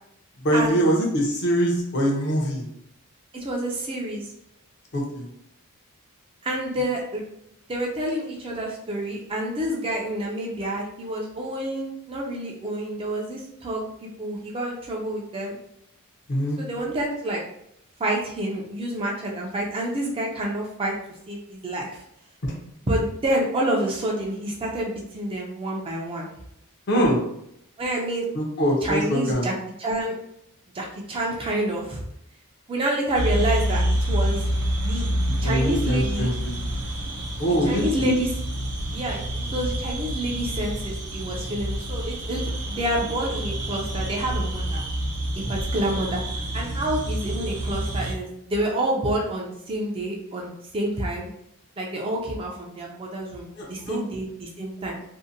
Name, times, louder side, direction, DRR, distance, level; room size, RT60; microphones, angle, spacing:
voice 1, 0.4-2.7 4.9-5.3 16.3-16.6 22.4-22.5 26.9-27.2 28.3-29.5 35.4-36.6 37.4-38.1 53.6-54.0, equal, 50° left, -1 dB, 0.6 m, -23 dB
voice 2, 3.3-4.2 6.4-7.2 7.7-13.8 14.2-15.6 16.6-17.4 18.0-20.9 21.3-21.9 22.9-26.3 27.8-28.3 28.8-29.5 29.8-30.2 30.7-32.0 32.7-34.4 34.8-35.1 35.4-36.3 37.4-38.3 38.9-44.8 45.5-51.3 51.8-55.0, right 1 dB, 25° right, -1 dB, 0.4 m, -28 dB
sound 1, 33.1-48.1, right 1 dB, 85° right, 0.6 m, -28 dB
2.6 x 2.1 x 2.6 m, 0.76 s
head